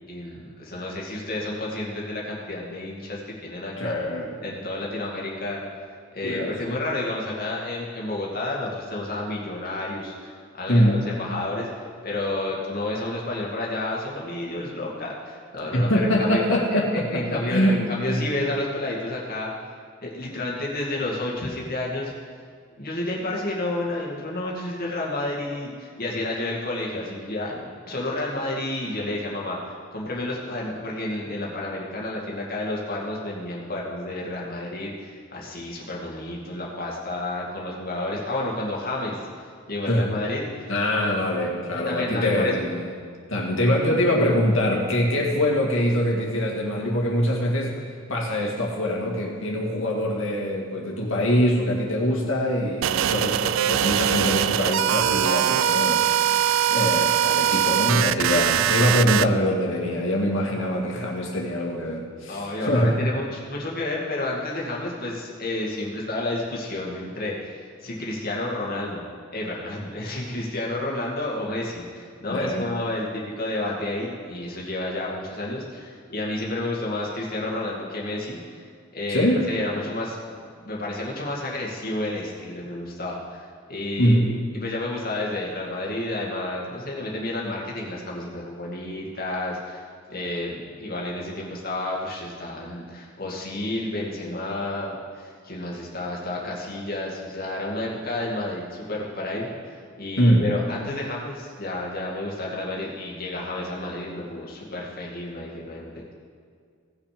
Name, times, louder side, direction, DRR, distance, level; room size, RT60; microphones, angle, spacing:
voice 1, 0.1-4.0 4.4-5.6 6.1-16.4 16.9-19.5 20.0-22.1 22.8-39.2 39.7-40.7 41.8-42.6 62.3-69.1 69.3-78.6 78.9-80.2 80.6-89.8 90.1-106.1, left 2 dB, 40° left, -3 dB, 2.2 m, -30 dB
voice 2, 3.8-4.4 6.2-6.6 10.7-11.0 15.7-18.2 39.9-40.1 40.7-42.9 43.3-47.8 48.1-63.1 72.3-72.7 79.1-79.4 84.0-84.3 100.2-100.5, equal, 60° left, -1 dB, 2.1 m, -23 dB
sound 1, 52.8-59.3, right 10 dB, 65° right, 0.3 m, -22 dB
18.0 x 6.2 x 5.1 m, 2.1 s
head